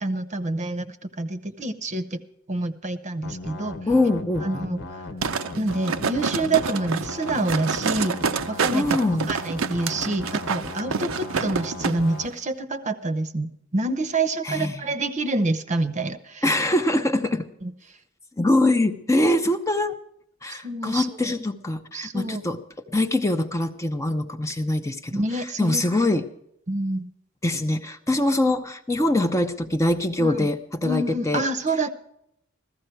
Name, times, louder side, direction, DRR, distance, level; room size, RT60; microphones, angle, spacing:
voice 1, 0.0-2.2 2.5-3.8 4.4-4.8 5.6-8.2 8.5-16.4 17.6-17.7 20.5-21.3 21.9-22.4 25.1-26.0 26.7-27.1 30.2-30.5 30.8-31.9, right 2 dB, 35° right, 12 dB, 0.8 m, -27 dB
sound 1, 3.2-12.3, left 2 dB, 60° left, 1.1 m, -37 dB
voice 2, 3.9-4.6 8.7-9.3 14.4-14.9 16.4-17.5 18.4-20.0 20.4-22.6 22.9-26.3 27.4-31.4, left 1 dB, 15° left, 7 dB, 0.6 m, -23 dB
sound 2, 5.2-12.0 12.3-12.4, right 6 dB, 75° right, 0.6 m, -28 dB
15.0 x 14.0 x 4.5 m, 0.77 s
head